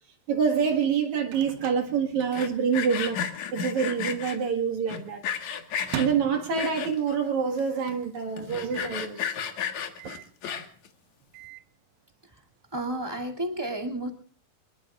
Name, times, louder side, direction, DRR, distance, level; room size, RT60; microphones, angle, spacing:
voice 1, 0.3-3.2 3.5-5.2 6.0-9.4, right 6 dB, 60° right, 4 dB, 3.0 m, -26 dB
Microwave oven, 0.9-2.9 3.1-3.2 3.5-4.0 4.5-7.2 7.6-7.7 7.9-8.0 8.7-9.1 10.0-10.4 11.1-11.7, right 11 dB, 85° right, 2.6 m, -41 dB
Sawing, 2.2-4.4 4.9-6.1 6.5-7.1 7.6-7.7 7.9-8.0 8.4-10.9, left 8 dB, 60° left, 2.7 m, -33 dB
voice 2, 12.7-14.1, right 1 dB, 10° right, 0 dB, 1.9 m, -31 dB
25.5 x 21.0 x 2.4 m, 0.42 s
omnidirectional pair, 3.9 m